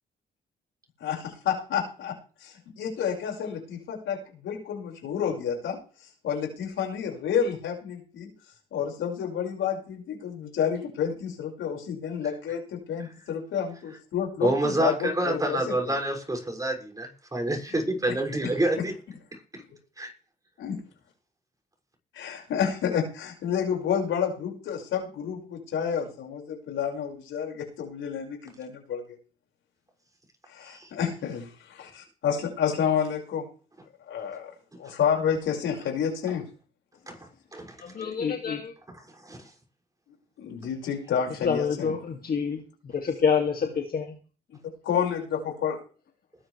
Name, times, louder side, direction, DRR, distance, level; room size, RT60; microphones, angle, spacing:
voice 1, 1.0-2.1 2.4-4.2 4.4-8.3 8.7-15.7 20.6-20.8 22.1-29.2 30.5-33.5 34.1-34.5 34.8-36.4 40.4-41.9 44.5-44.6 44.8-45.8, left 8 dB, 80° left, 6.0 m, -30 dB
voice 2, 14.4-18.9 19.5-19.6 20.0-20.1 30.6-30.9 34.8-34.9 37.1-37.8 39.1-39.5, right 1 dB, 15° right, 6.8 m, -28 dB
voice 3, 37.8-38.7 41.4-44.2, left 6 dB, 50° left, 2.6 m, -27 dB
21.0 x 11.5 x 3.5 m
cardioid pair, 90°, 20 cm